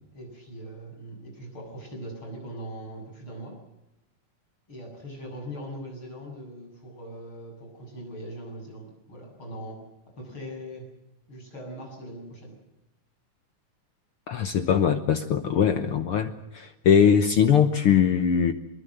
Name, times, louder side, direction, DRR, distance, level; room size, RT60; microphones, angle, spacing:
voice 1, 0.1-3.6 4.7-9.8 10.2-10.9 11.3-12.6, equal, 35° left, 0 dB, 8.7 m, -40 dB
voice 2, 14.3-18.5, left 7 dB, 65° left, 9 dB, 1.4 m, -21 dB
24.0 x 22.0 x 7.9 m, 0.88 s
omnidirectional pair, 3.8 m